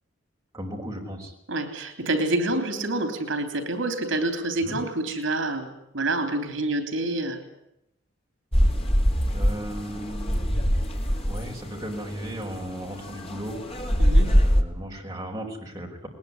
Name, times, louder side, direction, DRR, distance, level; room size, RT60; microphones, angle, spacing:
voice 1, 0.5-1.3 4.6-4.8 9.3-10.4 11.3-13.6 14.2-16.1, equal, 15° right, 0 dB, 5.2 m, -36 dB
voice 2, 1.5-7.4 14.0-14.3, right 2 dB, 75° right, 8 dB, 3.5 m, -27 dB
sound 1, 8.5-14.6, equal, 30° left, 2.5 m, -23 dB
21.0 x 20.5 x 10.0 m, 0.81 s
head